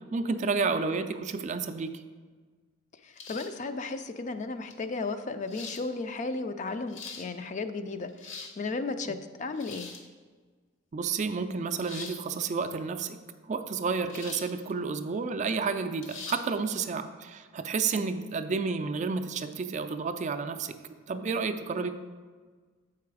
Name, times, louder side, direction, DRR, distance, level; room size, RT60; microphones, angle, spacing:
voice 1, 0.1-2.0 10.9-13.2 13.5-20.8 21.1-21.9, right 4 dB, 35° right, 8 dB, 0.3 m, -31 dB
voice 2, 3.0-9.9 17.9-18.0, left 3 dB, 35° left, 9 dB, 0.3 m, -34 dB
sound 1, 3.2-3.6 4.7-4.8 5.5-5.8 6.7-7.3 8.0-8.6 9.5-10.1 11.8-12.2 14.1-14.5 14.9-15.0 16.0-16.4, left 5 dB, 65° left, 0.9 m, -42 dB
7.6 x 4.7 x 4.8 m, 1.5 s
head